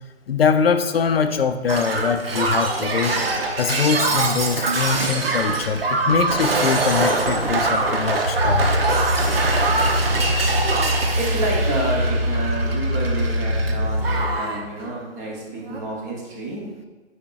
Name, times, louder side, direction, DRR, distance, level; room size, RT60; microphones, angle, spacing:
voice 1, 0.3-3.2 3.6-8.7, left 6 dB, 55° left, 9 dB, 0.5 m, -22 dB
Shatter, 1.7-13.7 14.0-14.6 15.6-15.8, right 3 dB, 55° right, 0.8 m, -23 dB
sound 1, 8.2-14.2, equal, 35° right, 0.4 m, -23 dB
voice 2, 11.1-16.6, right 2 dB, 15° right, -2 dB, 0.7 m, -29 dB
8.2 x 5.1 x 2.4 m, 1.3 s
figure-of-eight pair, 140°, 35 cm